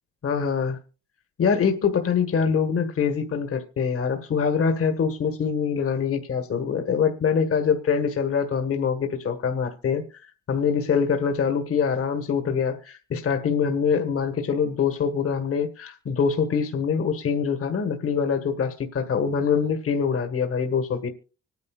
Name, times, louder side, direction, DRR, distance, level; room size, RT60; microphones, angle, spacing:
voice 1, 0.2-0.8 1.4-10.0 10.5-21.1, left 6 dB, 50° left, 1.5 m, -24 dB
25.0 x 9.7 x 2.4 m
cardioid pair, 90°, 30 cm